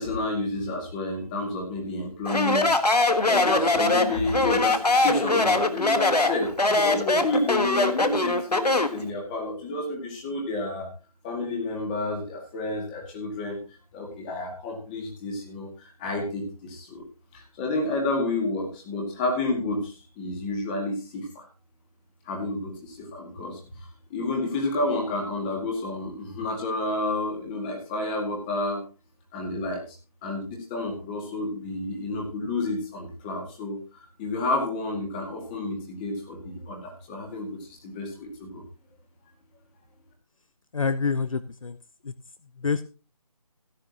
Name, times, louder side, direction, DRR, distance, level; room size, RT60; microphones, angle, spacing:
voice 1, 0.0-10.9 11.2-13.6 13.9-17.0 17.3-21.5 22.3-23.6 24.1-28.8 29.3-30.0 30.2-38.6, left 2 dB, 15° left, 1 dB, 2.1 m, -30 dB
Speech, 2.3-9.0, left 2 dB, 85° left, 1.6 m, -22 dB
voice 2, 40.7-41.8 42.0-42.1 42.6-42.8, left 5 dB, 60° left, 14 dB, 0.7 m, -27 dB
16.5 x 9.6 x 2.9 m, 0.34 s
figure-of-eight pair, 160°, 20 cm